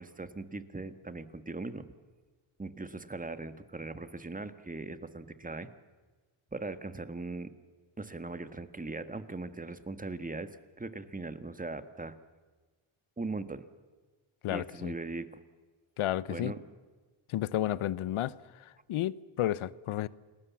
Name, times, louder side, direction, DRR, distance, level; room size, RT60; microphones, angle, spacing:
voice 1, 0.0-1.9 2.6-5.7 6.5-7.5 8.0-12.2 13.2-13.6 14.5-15.4 16.3-16.6, right 3 dB, 15° right, 1.6 m, -39 dB
voice 2, 14.4-14.9 16.0-16.5 17.3-20.1, left 13 dB, 80° left, 0.9 m, -32 dB
28.5 x 19.5 x 7.3 m
cardioid pair, 75°, 49 cm